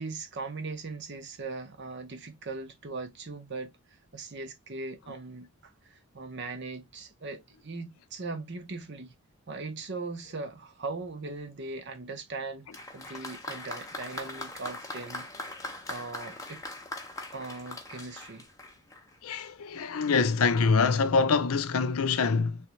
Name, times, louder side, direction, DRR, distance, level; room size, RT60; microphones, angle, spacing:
voice 1, 0.0-3.7 4.1-9.1 9.5-12.7 12.9-15.3 15.6-16.6 17.3-18.5, right 3 dB, 50° right, 0.8 m, -39 dB
Applause, 12.7-19.2, left 2 dB, 15° left, 0.7 m, -41 dB
voice 2, 19.2-22.6, left 4 dB, 75° left, 0.5 m, -25 dB
3.5 x 3.2 x 3.0 m
head